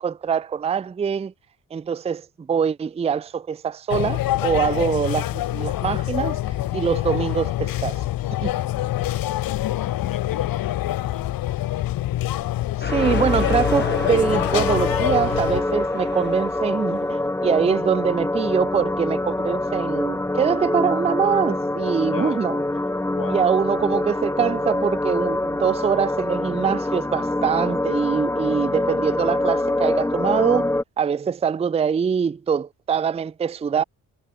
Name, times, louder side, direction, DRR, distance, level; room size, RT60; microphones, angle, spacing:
voice 1, 0.0-1.3 1.7-6.4 6.7-8.0 8.4-8.5 12.8-22.6 23.3-30.7 31.0-33.8, right 7 dB, 20° right, 0.4 m, -23 dB
sound 1, 3.9-15.6, left 14 dB, 90° left, 1.2 m, -26 dB
voice 2, 9.0-11.4 22.1-22.4 23.1-23.4 23.7-23.8, left 10 dB, 70° left, 2.8 m, -37 dB
sound 2, 12.8-17.0, left 5 dB, 30° left, 1.5 m, -31 dB
sound 3, 12.9-30.8, left 1 dB, 10° left, 0.8 m, -25 dB
cardioid pair, 80°, 34 cm